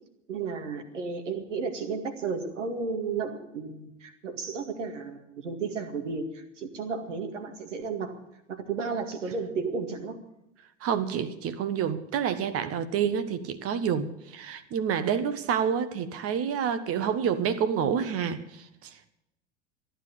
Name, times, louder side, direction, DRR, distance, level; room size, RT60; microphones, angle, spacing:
voice 1, 0.3-8.2 8.5-10.2, right 4 dB, 75° right, 2.1 m, -33 dB
voice 2, 10.8-19.1, right 7 dB, 40° right, 1.4 m, -28 dB
14.0 x 10.5 x 8.4 m
figure-of-eight pair, 80°, 37 cm